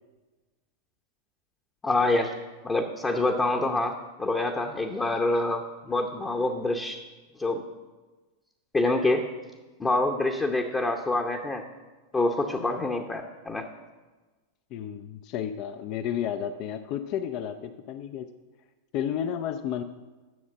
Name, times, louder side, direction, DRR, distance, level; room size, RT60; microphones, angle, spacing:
voice 1, 1.8-2.3 2.6-7.0 7.4-7.6 8.7-9.3 9.8-11.6 12.1-13.7, left 2 dB, 15° left, 2 dB, 0.8 m, -26 dB
voice 2, 14.7-18.3 18.9-19.8, left 9 dB, 40° left, 10 dB, 0.5 m, -32 dB
11.0 x 7.2 x 6.2 m, 1.3 s
figure-of-eight pair, 90°, 0 cm